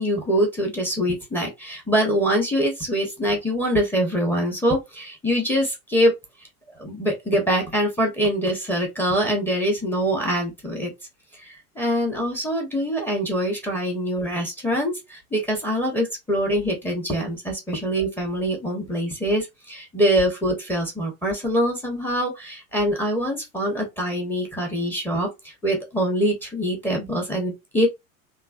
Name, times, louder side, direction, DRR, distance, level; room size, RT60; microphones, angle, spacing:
voice 1, 0.0-6.1 6.8-10.9 11.4-25.3 25.6-27.9, equal, 5° left, 1.0 m, -24 dB
3.1 x 2.1 x 2.4 m
figure-of-eight pair, 80°, 44 cm